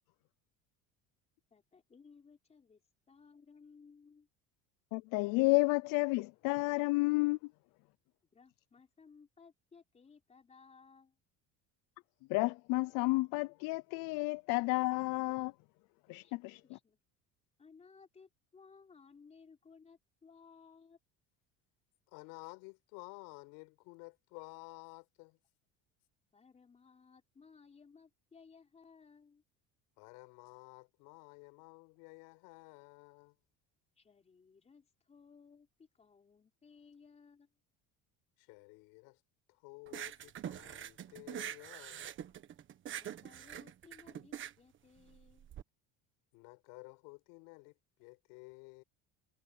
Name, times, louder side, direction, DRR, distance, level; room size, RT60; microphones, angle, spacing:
voice 1, 1.5-2.8 3.1-4.3 8.3-11.2 16.1-16.3 16.6-17.0 17.6-21.0 26.3-29.4 34.0-37.6 42.9-45.5, left 5 dB, 20° left, 4.3 m, -60 dB
voice 2, 4.9-7.5 12.3-15.5 16.1-16.8, left 24 dB, 65° left, 0.6 m, -31 dB
voice 3, 22.1-25.4 30.0-33.4 38.4-39.2 39.5-42.1 46.3-48.8, left 29 dB, 90° left, 5.9 m, -53 dB
sound 1, 39.9-45.6, right 10 dB, 35° right, 1.4 m, -44 dB
cardioid pair, 160°, 35 cm